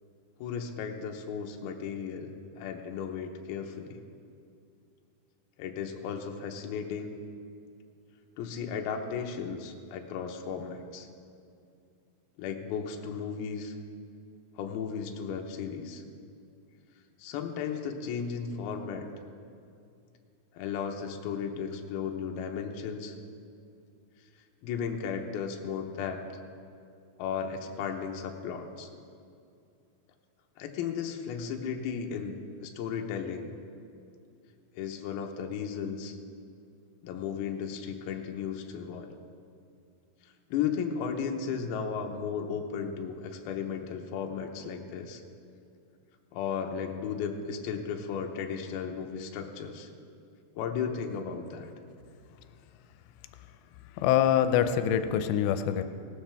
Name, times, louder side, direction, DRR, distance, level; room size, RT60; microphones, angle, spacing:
voice 1, 0.4-2.3 2.6-4.0 5.6-7.2 8.4-11.1 12.4-13.8 14.6-16.0 17.2-19.1 20.5-23.1 24.6-26.2 27.2-28.9 30.6-33.5 34.7-36.2 37.0-39.2 40.5-45.2 46.3-49.9 50.6-51.7, left 6 dB, 75° left, 3 dB, 2.6 m, -35 dB
voice 2, 54.0-55.8, left 10 dB, 90° left, 9 dB, 2.9 m, -24 dB
18.0 x 13.0 x 3.5 m, 2.5 s
omnidirectional pair, 5.0 m